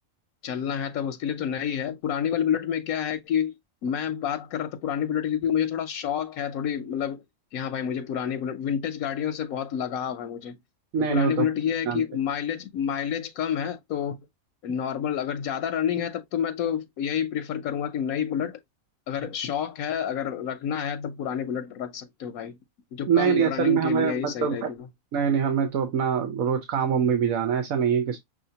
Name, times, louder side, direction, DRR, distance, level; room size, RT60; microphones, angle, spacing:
voice 1, 0.4-3.5 3.8-7.2 7.5-10.6 11.1-14.2 14.6-18.6 19.1-22.6 22.9-24.9, left 8 dB, 90° left, 1.1 m, -29 dB
voice 2, 10.9-11.5 11.9-12.0 23.1-24.7 25.1-28.2, right 7 dB, 80° right, 1.3 m, -24 dB
6.1 x 2.8 x 2.8 m
omnidirectional pair, 1.5 m